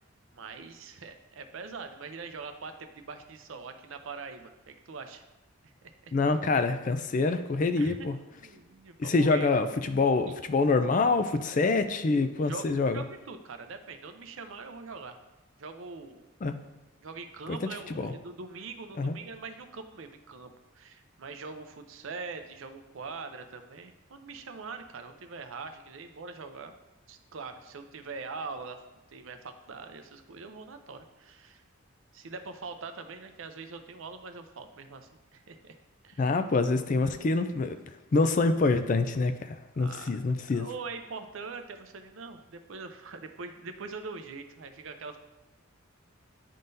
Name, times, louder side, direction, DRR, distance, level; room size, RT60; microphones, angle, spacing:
voice 1, 0.3-5.2 5.6-6.1 7.8-9.5 12.4-15.2 15.6-16.2 17.0-26.7 27.1-28.8 29.1-31.6 32.1-35.8 36.0-36.4 39.7-40.2 40.5-45.2, right 4 dB, 70° right, 7 dB, 0.5 m, -43 dB
voice 2, 6.1-8.1 9.0-13.0 16.4-16.6 17.5-17.6 17.9-18.1 19.0-19.2 36.2-37.8 38.1-40.7, left 3 dB, 40° left, 9 dB, 0.3 m, -26 dB
10.0 x 3.8 x 2.6 m, 1.0 s
head